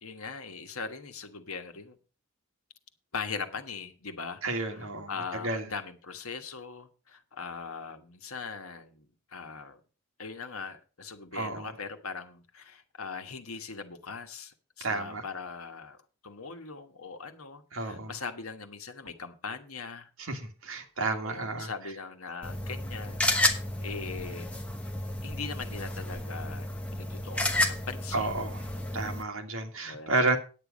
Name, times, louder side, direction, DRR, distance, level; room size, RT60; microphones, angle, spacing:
voice 1, 0.0-2.0 3.1-9.8 10.2-20.1 21.0-23.3 23.8-24.5 25.2-28.3 29.9-30.3, left 5 dB, 80° left, 7 dB, 1.4 m, -40 dB
voice 2, 4.4-5.1 5.4-5.7 11.3-11.7 14.8-15.2 17.7-18.1 20.2-21.7 28.1-28.6 28.9-30.4, right 2 dB, 70° right, 4 dB, 1.9 m, -31 dB
sound 1, 22.4-29.2, left 1 dB, 5° left, 1.1 m, -31 dB
9.4 x 9.0 x 5.1 m, 0.35 s
head